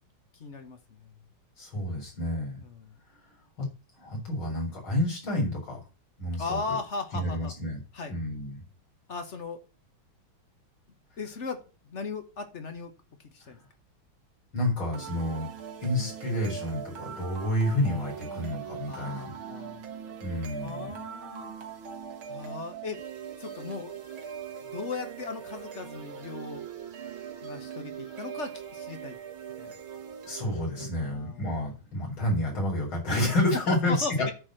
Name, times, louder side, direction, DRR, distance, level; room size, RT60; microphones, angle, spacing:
voice 1, 0.3-1.1 2.6-3.0 6.4-7.5 7.9-8.2 9.1-9.6 11.2-12.9 13.2-13.6 18.9-19.9 20.5-21.5 22.3-23.0 23.4-24.0 24.6-26.6 27.4-29.2 29.6-29.7 31.0-31.5 33.5-34.3, left 4 dB, 40° left, 8 dB, 1.2 m, -37 dB
voice 2, 1.6-2.6 3.6-3.7 4.0-5.8 6.2-6.8 7.1-7.8 8.1-8.6 14.5-15.5 15.8-19.3 20.2-20.9 30.3-34.3, left 1 dB, 80° left, -2 dB, 5.0 m, -29 dB
sound 1, 14.9-30.9, right 8 dB, 75° right, 2.2 m, -41 dB
9.8 x 4.3 x 7.5 m, 0.35 s
omnidirectional pair, 2.2 m